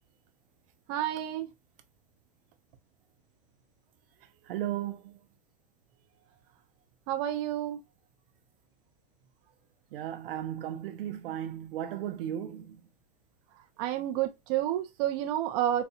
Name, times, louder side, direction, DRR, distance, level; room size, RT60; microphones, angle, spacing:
voice 1, 0.9-1.5 7.1-7.8 13.8-15.8, right 12 dB, 40° right, 0.6 m, -30 dB
voice 2, 4.4-5.2 9.9-12.9, right 11 dB, 75° right, 0.8 m, -35 dB
4.1 x 2.3 x 2.6 m
supercardioid pair, 160°, 29 cm